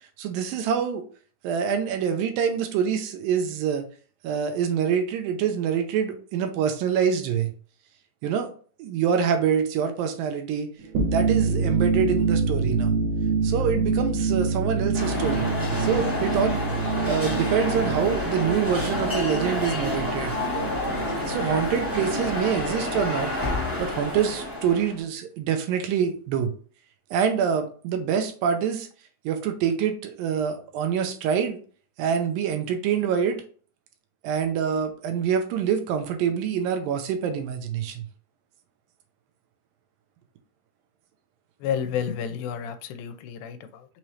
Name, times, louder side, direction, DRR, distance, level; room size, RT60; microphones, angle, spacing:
voice 1, 0.2-1.1 1.4-3.9 4.2-7.5 8.2-8.5 8.8-10.7 11.1-12.9 13.4-15.5 15.8-16.6 17.1-20.3 21.3-23.3 23.8-26.5 27.1-28.9 29.3-31.6 32.0-33.4 34.2-38.0, right 7 dB, 85° right, 6 dB, 2.4 m, -25 dB
sound 1, 10.8-22.4, right 4 dB, 70° right, 2.1 m, -27 dB
sound 2, 14.9-25.0, left 1 dB, 10° right, 0.6 m, -29 dB
voice 2, 41.6-43.9, left 8 dB, 85° left, 9 dB, 2.4 m, -30 dB
5.9 x 3.1 x 2.8 m, 0.41 s
omnidirectional pair, 4.1 m